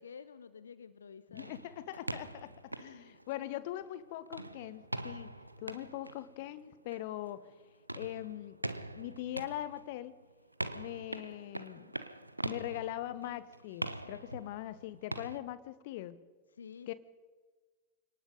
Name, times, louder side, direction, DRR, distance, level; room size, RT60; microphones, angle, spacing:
voice 1, 0.0-1.5 16.5-16.9, left 6 dB, 70° left, 14 dB, 0.8 m, -50 dB
voice 2, 1.3-7.5 7.9-8.6 9.0-10.1 10.7-11.9 12.4-16.2 16.9-17.0, left 14 dB, 50° left, 15 dB, 1.1 m, -41 dB
sound 1, 1.3-3.9 4.3-15.4, right 1 dB, 85° right, 0.8 m, -43 dB
28.0 x 18.5 x 5.3 m, 1.4 s
figure-of-eight pair, 90°, 0 cm